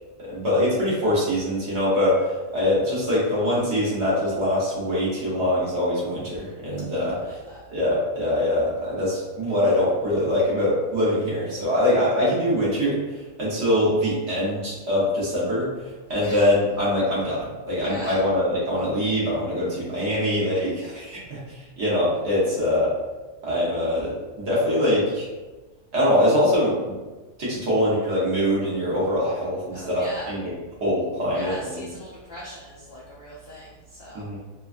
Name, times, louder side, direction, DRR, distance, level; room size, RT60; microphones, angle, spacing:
voice 1, 0.3-7.4 7.7-22.9 23.4-25.3 25.9-27.0 27.4-30.5 30.8-31.8 34.1-34.4, left 1 dB, 50° right, -7 dB, 1.1 m, -23 dB
voice 2, 7.1-7.6 16.2-16.5 17.8-18.2 19.0-19.1 29.7-30.3 31.3-34.4, left 1 dB, 70° left, -5 dB, 0.5 m, -40 dB
3.4 x 2.2 x 2.4 m, 1.2 s
omnidirectional pair, 1.6 m